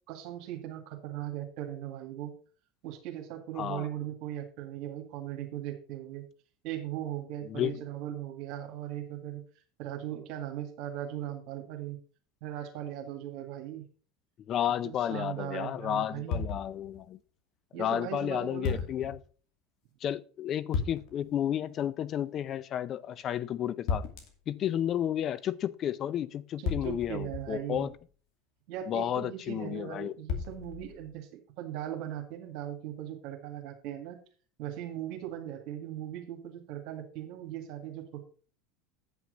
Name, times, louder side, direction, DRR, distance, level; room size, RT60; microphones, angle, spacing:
voice 1, 0.1-2.3 2.8-6.2 6.6-9.4 9.8-12.0 12.4-13.9 14.8-16.5 17.7-18.8 26.6-27.9 28.7-34.2 34.6-38.2, right 12 dB, 65° right, 2.0 m, -39 dB
voice 2, 3.6-3.9 7.5-7.8 14.4-17.2 17.8-19.2 20.0-24.1 24.5-27.9 28.9-30.1, left 10 dB, 45° left, 0.6 m, -32 dB
sound 1, 16.3-17.1 18.6-19.2 20.7-21.3 23.9-24.5 26.7-28.1 30.3-31.1, left 5 dB, 60° left, 2.5 m, -35 dB
9.2 x 6.0 x 5.1 m
hypercardioid pair, 90°, 0 cm